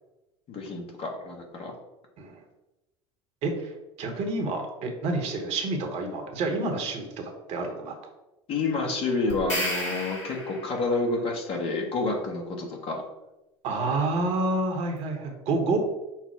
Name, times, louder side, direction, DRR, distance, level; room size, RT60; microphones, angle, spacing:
voice 1, 0.5-1.7 8.5-13.0, left 3 dB, 40° left, 1 dB, 1.0 m, -29 dB
voice 2, 3.4-8.0 13.6-15.8, right 2 dB, 45° right, 3 dB, 0.9 m, -29 dB
sound 1, 9.3-10.9, left 1 dB, 70° left, 1.6 m, -32 dB
5.8 x 2.0 x 4.5 m, 0.99 s
figure-of-eight pair, 70°, 15 cm